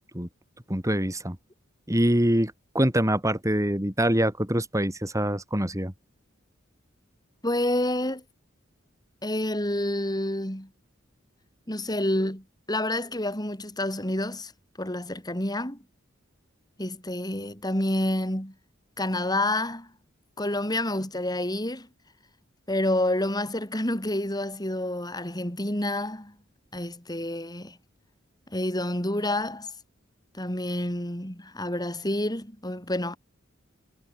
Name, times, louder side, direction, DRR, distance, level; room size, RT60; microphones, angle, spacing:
voice 1, 0.7-1.4 1.9-5.9, right 1 dB, 15° right, 6.1 m, -24 dB
voice 2, 7.4-8.2 9.2-10.7 11.7-14.5 14.8-15.8 16.8-18.5 19.0-19.9 20.4-21.9 22.7-26.3 26.7-27.8 28.5-29.7 30.3-33.2, left 1 dB, 20° left, 7.5 m, -28 dB
head